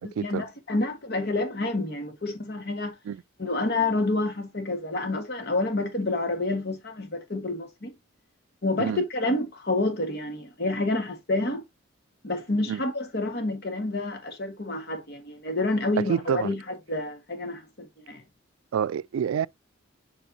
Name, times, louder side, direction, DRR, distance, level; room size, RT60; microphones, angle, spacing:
voice 1, 0.2-3.0 3.4-7.9 8.6-11.6 12.2-18.2, left 2 dB, 55° left, 1.5 m, -28 dB
voice 2, 16.1-16.5 18.7-19.5, right 8 dB, 90° right, 0.3 m, -27 dB
7.2 x 4.8 x 2.7 m
head